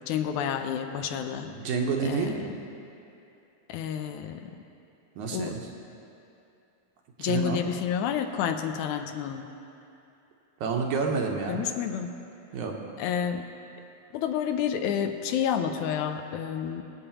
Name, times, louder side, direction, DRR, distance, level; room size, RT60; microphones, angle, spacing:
voice 1, 0.1-1.5 2.0-2.5 3.7-4.5 5.3-5.5 7.2-9.5 11.5-12.1 13.0-13.4 14.1-16.8, left 8 dB, 85° left, 7 dB, 2.1 m, -29 dB
voice 2, 1.4-2.4 5.2-5.7 7.2-7.6 10.6-11.7 12.5-12.8, right 5 dB, 85° right, 1 dB, 2.4 m, -29 dB
22.5 x 8.1 x 2.9 m, 2.8 s
omnidirectional pair, 3.4 m